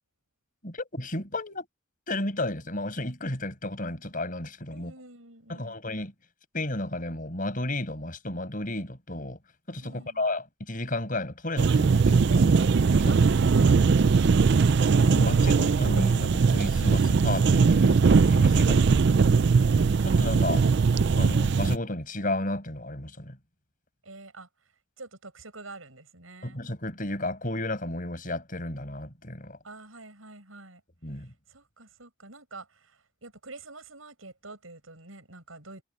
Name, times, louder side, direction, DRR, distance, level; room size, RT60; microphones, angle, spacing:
voice 1, 0.6-1.7 2.1-4.9 5.5-6.1 6.5-9.4 9.7-12.5 12.9-13.2 15.0-18.8 20.0-20.7 21.1-23.4 26.4-29.6 31.0-31.3, left 1 dB, 40° left, 6.6 m, -33 dB
voice 2, 4.7-5.8 9.8-10.2 13.1-13.9 24.0-24.5 25.0-26.6 29.6-30.8 31.2-35.8, right 2 dB, 80° right, 7.6 m, -47 dB
sound 1, 11.6-21.8, right 5 dB, 55° right, 0.4 m, -20 dB
head